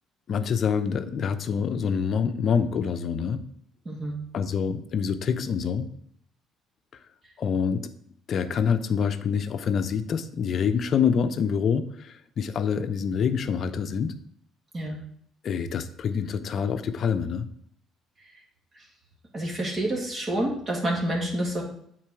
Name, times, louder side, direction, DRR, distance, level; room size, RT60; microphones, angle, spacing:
voice 1, 0.3-3.4 4.3-5.9 7.4-7.9 8.3-14.2 15.4-17.5, left 6 dB, 55° left, 10 dB, 0.6 m, -26 dB
voice 2, 3.9-4.2 14.7-15.0 18.8-18.9 19.3-21.6, right 1 dB, 35° right, -1 dB, 2.2 m, -28 dB
7.4 x 4.6 x 4.7 m, 0.68 s
supercardioid pair, 85°, 0 cm